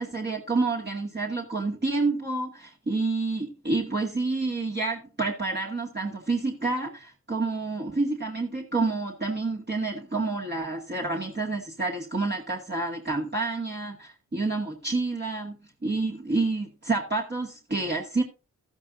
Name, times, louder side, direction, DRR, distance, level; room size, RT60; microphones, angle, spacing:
voice 1, 0.0-18.2, right 3 dB, 35° right, -2 dB, 2.2 m, -29 dB
13.5 x 10.5 x 2.7 m, 0.32 s
cardioid pair, 65°, 31 cm